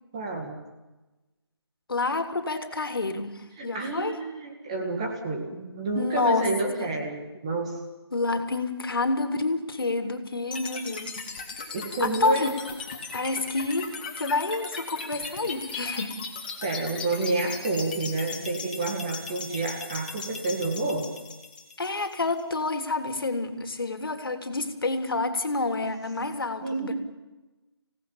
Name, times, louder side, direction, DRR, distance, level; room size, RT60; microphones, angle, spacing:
voice 1, 0.1-0.6 3.6-7.8 11.7-12.5 16.6-21.1 26.6-26.9, right 2 dB, 15° right, 2 dB, 1.7 m, -29 dB
voice 2, 1.9-4.2 5.9-6.5 6.8-6.9 8.1-11.2 12.0-12.5 13.1-13.9 14.2-16.2 21.8-26.9, left 3 dB, 55° left, 7 dB, 3.1 m, -28 dB
sound 1, 10.5-22.5, left 4 dB, 20° left, 2.3 m, -38 dB
27.0 x 18.0 x 7.2 m, 1.1 s
figure-of-eight pair, 175°, 14 cm